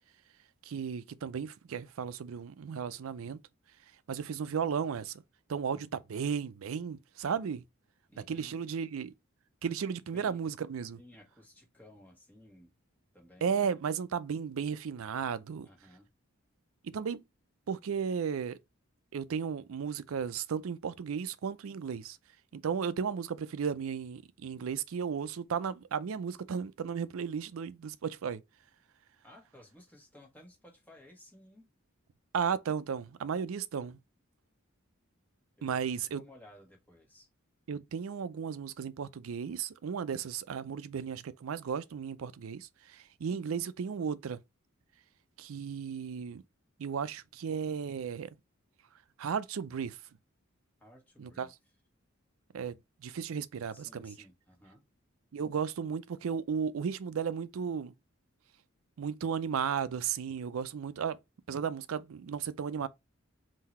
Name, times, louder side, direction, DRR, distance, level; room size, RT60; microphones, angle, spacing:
voice 1, 0.7-3.4 4.1-5.2 5.5-7.6 8.2-9.1 9.6-11.0 13.4-15.7 16.8-17.2 17.7-18.6 19.1-22.2 22.5-28.4 32.3-34.0 35.6-36.2 37.7-44.4 45.4-46.4 46.8-48.3 49.2-50.0 51.2-51.5 52.5-52.8 53.0-54.1 55.3-57.9 59.0-61.2 61.5-62.9, right 7 dB, 80° right, 0.4 m, -34 dB
voice 2, 8.1-8.5 10.1-10.4 11.0-12.7 13.1-13.6 15.6-16.1 29.2-31.7 35.6-37.3 50.8-51.5 53.7-54.8, left 1 dB, 10° left, 1.4 m, -56 dB
3.8 x 2.7 x 4.2 m
head